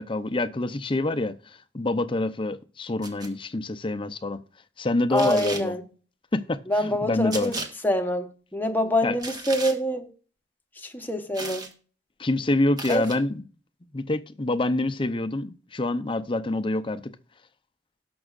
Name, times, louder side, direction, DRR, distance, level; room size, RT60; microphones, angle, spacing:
voice 1, 0.0-4.4 4.8-5.7 6.3-7.5 9.0-9.2 12.2-13.4 13.9-17.1, left 2 dB, 30° left, 0.6 m, -26 dB
sound 1, 3.0-3.3 5.2-5.7 7.3-7.7 9.2-9.8 11.3-11.7 12.8-13.2, right 3 dB, 20° right, 1.5 m, -35 dB
voice 2, 5.1-5.8 6.7-7.6 7.8-10.1 10.8-11.7 12.9-13.0, equal, 10° left, 1.0 m, -26 dB
18.5 x 6.2 x 2.5 m
head